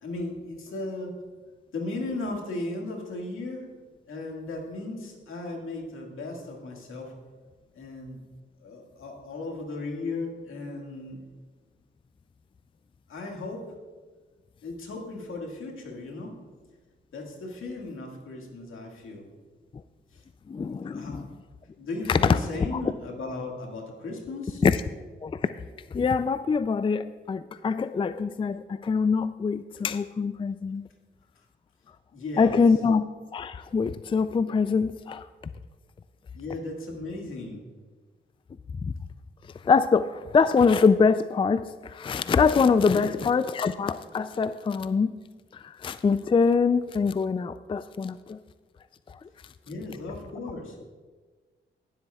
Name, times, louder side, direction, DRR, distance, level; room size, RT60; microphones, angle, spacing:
voice 1, 0.0-1.1 1.7-3.7 4.1-7.1 7.7-8.2 8.6-11.2 13.1-13.7 14.6-16.3 17.1-19.3 20.1-20.2 20.9-21.2 21.8-24.6 32.1-32.6 36.4-37.6 42.9-43.2 49.7-50.8, left 2 dB, 80° left, 1 dB, 1.9 m, -36 dB
voice 2, 20.5-21.3 22.1-22.4 22.7-22.8 24.6-24.8 25.2-25.3 25.9-30.8 32.4-33.0 33.3-35.2 38.8-38.9 39.6-45.1 45.5-48.4, left 5 dB, 25° left, 13 dB, 0.3 m, -24 dB
19.5 x 7.7 x 2.3 m, 1.4 s
cardioid pair, 55°, 21 cm